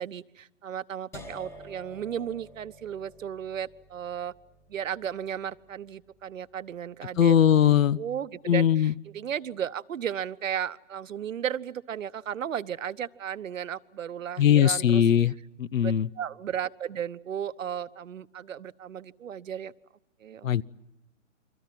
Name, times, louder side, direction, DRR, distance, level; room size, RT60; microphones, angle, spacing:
voice 1, 0.0-4.3 4.7-15.3 15.8-19.7 20.2-20.5, right 9 dB, 80° right, 15 dB, 1.0 m, -35 dB
sound 1, 1.1-7.1, equal, 5° left, 1.2 m, -50 dB
voice 2, 7.2-8.0 8.5-8.9 14.4-15.3 15.6-16.1 20.4-20.6, left 9 dB, 85° left, 24 dB, 0.8 m, -20 dB
29.5 x 24.0 x 6.0 m, 0.93 s
hypercardioid pair, 150°, 38 cm